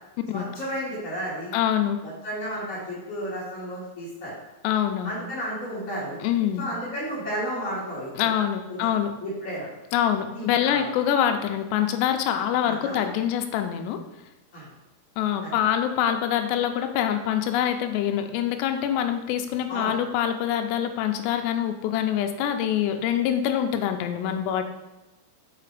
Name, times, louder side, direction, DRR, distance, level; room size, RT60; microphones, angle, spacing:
voice 1, 0.3-1.5 2.0-4.3 5.0-6.2 6.6-8.3 8.7-8.8 9.2-9.7 10.3-10.8 12.6-13.1 14.5-14.7 15.4-15.5 19.7-19.9, equal, 20° left, -11 dB, 2.3 m, -32 dB
voice 2, 1.5-2.0 4.6-5.2 6.2-6.7 8.2-9.1 9.9-14.0 15.2-24.6, left 10 dB, 80° left, 6 dB, 2.7 m, -25 dB
6.8 x 5.1 x 4.9 m, 1.0 s
omnidirectional pair, 5.0 m